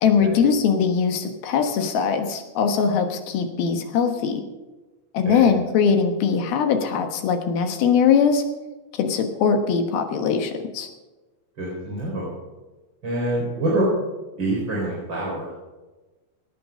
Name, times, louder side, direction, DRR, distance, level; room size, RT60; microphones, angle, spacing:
voice 1, 0.0-4.4 5.1-8.4 9.0-10.9, left 6 dB, 65° left, 6 dB, 2.8 m, -21 dB
voice 2, 11.6-12.3 13.0-13.9 14.4-15.5, right 2 dB, 25° right, -6 dB, 4.6 m, -26 dB
19.0 x 8.8 x 5.4 m, 1.2 s
omnidirectional pair, 5.1 m